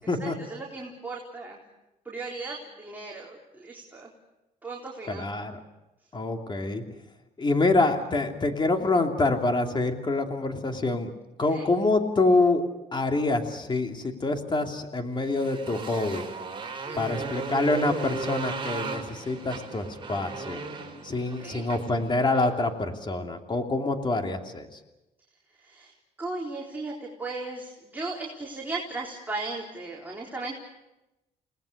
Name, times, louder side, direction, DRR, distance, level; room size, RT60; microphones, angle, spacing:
voice 1, 0.2-1.6 2.1-4.1 4.6-5.3 11.5-11.7 16.7-17.3 21.4-21.6 25.6-25.9 26.2-30.6, right 3 dB, 10° right, -3 dB, 4.1 m, -36 dB
voice 2, 5.1-5.6 6.1-6.8 7.4-11.1 11.4-12.6 12.9-16.2 17.0-20.6 21.0-24.8, left 2 dB, 30° left, 4 dB, 3.0 m, -26 dB
Motorcycle, 15.2-22.6, right 4 dB, 35° right, 4.8 m, -36 dB
29.5 x 19.5 x 6.7 m, 0.95 s
cardioid pair, 95°, 15 cm